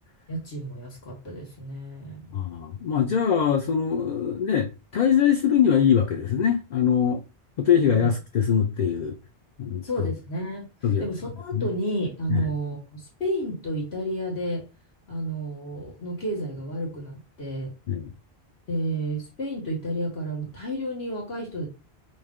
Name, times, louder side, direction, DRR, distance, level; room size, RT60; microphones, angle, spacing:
voice 1, 0.3-2.4 7.8-8.1 9.8-10.7 11.0-14.6 15.1-17.7 18.7-21.7, right 1 dB, 75° left, 1.7 m, -31 dB
voice 2, 2.3-7.2 7.6-9.2 9.6-9.8 10.8-11.1 11.5-11.7 12.3-12.5 17.9-18.1, left 8 dB, 55° left, 0.5 m, -22 dB
3.2 x 2.7 x 3.6 m
omnidirectional pair, 1.1 m